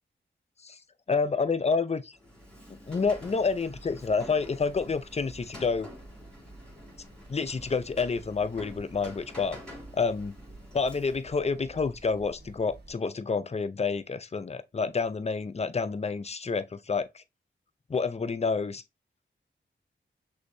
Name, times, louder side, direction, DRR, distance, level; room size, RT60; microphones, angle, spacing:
voice 1, 1.1-2.2 2.9-5.9 7.3-9.6 9.9-10.4 10.7-17.2 17.9-18.8, left 4 dB, 30° left, 0.5 m, -29 dB
Rain, 2.1-11.4, left 1 dB, 5° left, 2.5 m, -48 dB
sound 1, 2.9-12.9, right 2 dB, 55° right, 1.5 m, -51 dB
6.2 x 2.7 x 2.7 m
cardioid pair, 45°, 20 cm